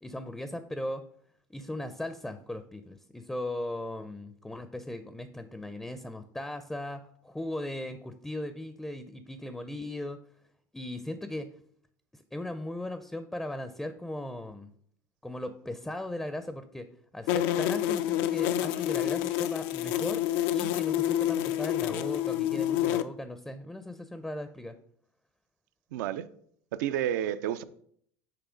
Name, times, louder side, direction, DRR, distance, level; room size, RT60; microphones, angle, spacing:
voice 1, 0.0-1.0 1.5-10.2 10.7-11.5 12.1-14.7 15.2-16.9 17.1-20.2 20.5-24.8, left 1 dB, 5° left, 0.5 m, -38 dB
sound 1, 17.3-23.0, left 12 dB, 70° left, 0.4 m, -28 dB
voice 2, 25.9-26.3 26.7-27.6, right 10 dB, 75° right, 0.4 m, -30 dB
6.0 x 3.2 x 5.0 m
hypercardioid pair, 85°, 10 cm